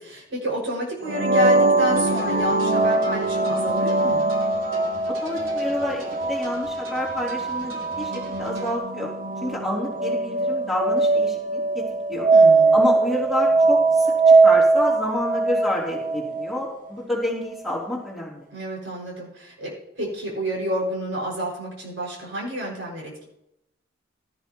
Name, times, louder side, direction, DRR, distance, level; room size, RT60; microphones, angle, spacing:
voice 1, 0.0-4.2 12.3-12.7 18.5-23.3, right 1 dB, 70° right, -3 dB, 6.0 m, -29 dB
sound 1, 1.1-16.7, right 3 dB, 45° right, 0.9 m, -21 dB
sound 2, 2.0-8.8, right 1 dB, 85° right, 2.9 m, -44 dB
voice 2, 5.1-9.1 9.4-11.8 12.1-12.3 12.7-18.5, left 1 dB, ahead, -5 dB, 3.3 m, -29 dB
17.5 x 13.0 x 3.1 m, 0.85 s
head